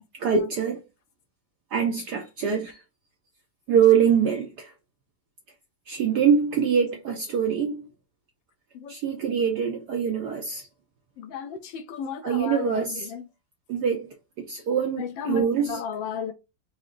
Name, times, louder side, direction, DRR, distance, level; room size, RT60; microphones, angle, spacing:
voice 1, 0.2-0.8 1.7-2.8 3.7-4.7 5.9-7.9 8.9-10.7 12.2-13.1 13.7-14.1 14.4-15.8, right 7 dB, 75° right, 0.9 m, -24 dB
voice 2, 11.2-12.7 13.1-13.2 15.0-16.3, left 7 dB, 75° left, 1.1 m, -33 dB
4.9 x 2.8 x 2.4 m
omnidirectional pair, 2.4 m